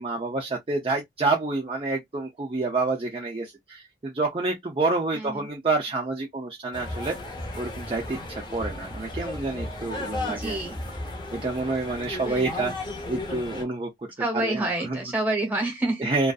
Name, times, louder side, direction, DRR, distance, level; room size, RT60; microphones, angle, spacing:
voice 1, 0.0-7.2 7.6-10.6 11.3-12.7 13.1-14.1 14.4-15.0 16.0-16.3, right 3 dB, 30° right, 0.5 m, -28 dB
voice 2, 5.1-5.5 10.3-10.8 12.2-12.6 14.2-16.1, right 2 dB, 10° right, 1.0 m, -28 dB
sound 1, 6.7-13.6, left 2 dB, 25° left, 0.7 m, -35 dB
2.5 x 2.3 x 2.3 m
head